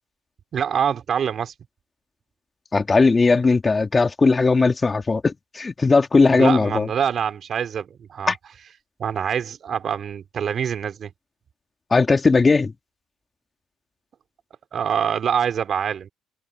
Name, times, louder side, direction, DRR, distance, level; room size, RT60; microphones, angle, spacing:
voice 1, 0.5-1.5 6.3-8.3 9.0-11.1 14.7-16.1, right 8 dB, 50° right, 3.8 m, -25 dB
voice 2, 2.7-6.9 8.3-8.4 11.9-12.7, left 4 dB, 25° left, 2.7 m, -18 dB
supercardioid pair, 80°, 0 cm